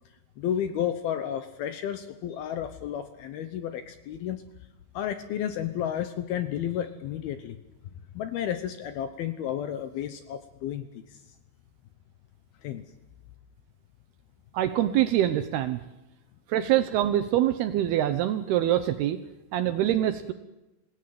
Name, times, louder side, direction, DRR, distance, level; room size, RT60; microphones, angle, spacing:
voice 1, 0.4-4.4 4.9-7.6 8.1-11.2 12.6-12.9, left 10 dB, 75° left, 10 dB, 2.4 m, -32 dB
voice 2, 14.5-15.8 16.5-19.2 19.5-20.3, right 12 dB, 75° right, 10 dB, 2.4 m, -24 dB
27.5 x 17.0 x 7.6 m, 1.0 s
omnidirectional pair, 5.4 m